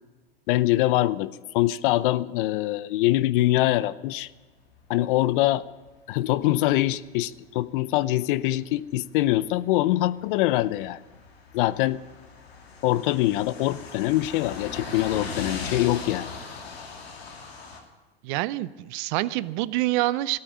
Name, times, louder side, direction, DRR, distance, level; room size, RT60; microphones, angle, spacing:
voice 1, 0.5-4.3 4.9-5.6 6.1-11.0 11.5-12.0 12.8-16.3, left 16 dB, 60° left, 18 dB, 0.6 m, -24 dB
sound 1, 4.6-6.4 6.6-6.9 7.3-7.4 7.7-8.0 8.4-9.4 9.7-17.8, left 4 dB, 90° left, 2.7 m, -39 dB
voice 2, 18.2-20.4, right 17 dB, 55° right, 19 dB, 0.6 m, -26 dB
13.5 x 8.9 x 9.3 m, 1.3 s
hypercardioid pair, 105°, 30 cm